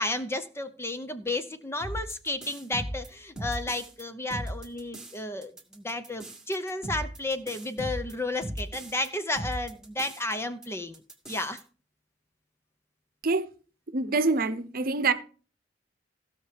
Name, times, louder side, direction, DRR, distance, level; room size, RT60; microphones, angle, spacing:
voice 1, 0.0-11.0 11.3-11.6, left 2 dB, 15° left, 0.7 m, -32 dB
sound 1, 1.8-4.0 4.3-5.2 5.4-9.1 9.4-10.3 10.6-10.7 10.9-11.6, right 1 dB, 5° right, 2.2 m, -37 dB
voice 2, 13.9-15.1, right 3 dB, 50° right, 0.9 m, -25 dB
15.5 x 5.8 x 5.1 m
head